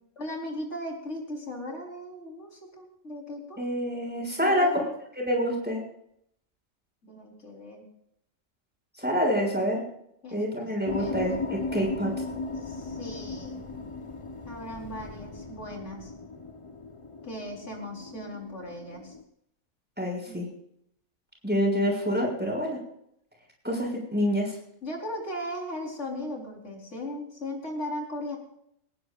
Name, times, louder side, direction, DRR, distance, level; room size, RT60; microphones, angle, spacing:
voice 1, 0.2-3.6 4.4-4.9 7.0-7.8 10.2-10.5 10.9-11.2 12.6-13.6 14.5-16.1 17.2-19.1 20.3-20.4 24.8-28.4, left 1 dB, 60° left, 0 dB, 4.6 m, -37 dB
voice 2, 3.6-4.7 5.2-5.8 9.0-9.8 10.3-12.1 20.0-20.5 21.4-22.8 23.6-24.5, equal, 5° right, -1 dB, 6.6 m, -27 dB
sound 1, 10.9-19.2, left 3 dB, 25° left, 1.1 m, -37 dB
19.5 x 18.5 x 2.5 m, 0.74 s
omnidirectional pair, 1.4 m